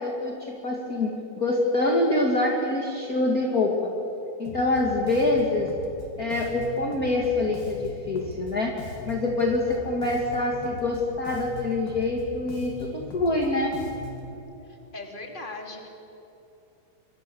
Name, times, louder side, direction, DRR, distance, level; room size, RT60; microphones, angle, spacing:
voice 1, 0.0-3.9 4.4-5.7 6.2-8.7 9.0-13.7, left 2 dB, 30° left, -1 dB, 1.7 m, -25 dB
Bass guitar, 4.5-14.3, left 2 dB, 60° left, 4.6 m, -40 dB
voice 2, 14.6-15.9, left 2 dB, 15° left, 2 dB, 2.5 m, -39 dB
27.5 x 24.0 x 7.1 m, 2.9 s
omnidirectional pair, 4.8 m